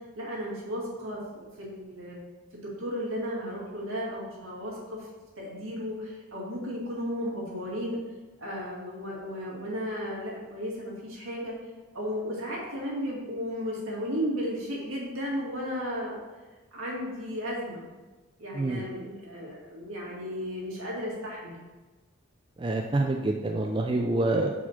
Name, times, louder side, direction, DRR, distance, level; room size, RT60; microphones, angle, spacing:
voice 1, 0.2-2.2 2.5-5.1 5.4-8.0 8.4-11.5 11.9-16.2 16.7-17.8 18.4-21.6, equal, 80° right, -4 dB, 2.0 m, -34 dB
voice 2, 22.6-24.5, right 2 dB, 25° right, 1 dB, 0.3 m, -27 dB
4.7 x 4.2 x 5.8 m, 1.2 s
head